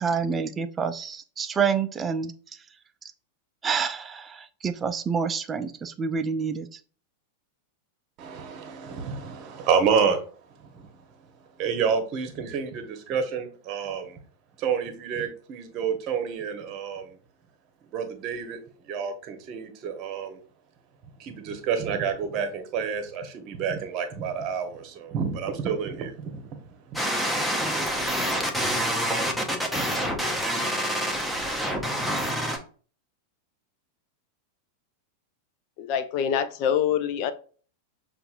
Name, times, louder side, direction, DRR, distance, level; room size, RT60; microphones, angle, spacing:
voice 1, 0.0-2.3 3.6-6.7, right 6 dB, 20° right, 10 dB, 0.4 m, -28 dB
voice 2, 8.2-10.2 10.5-10.9 11.6-12.8 13.1-14.2 14.6-17.1 17.9-18.6 18.9-20.4 21.2-27.4, right 6 dB, 35° right, 6 dB, 0.9 m, -29 dB
sound 1, 27.0-32.6, equal, ahead, 0.7 m, -27 dB
voice 3, 35.8-37.3, left 8 dB, 45° left, 12 dB, 0.5 m, -25 dB
6.7 x 2.5 x 2.5 m, 0.41 s
figure-of-eight pair, 90°, 0 cm